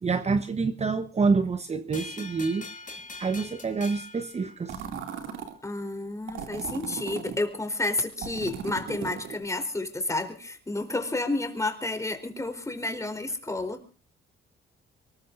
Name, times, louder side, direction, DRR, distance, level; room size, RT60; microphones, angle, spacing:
voice 1, 0.0-2.7 3.2-4.8, right 4 dB, 35° right, 1.1 m, -27 dB
sound 1, 1.9-5.2, left 3 dB, 40° left, 2.5 m, -43 dB
sound 2, 4.7-5.5 6.3-7.4 8.2-9.4, right 7 dB, 85° right, 2.7 m, -37 dB
voice 2, 5.6-13.8, left 2 dB, 15° left, 3.9 m, -30 dB
24.0 x 20.5 x 2.6 m
cardioid pair, 90°, 20 cm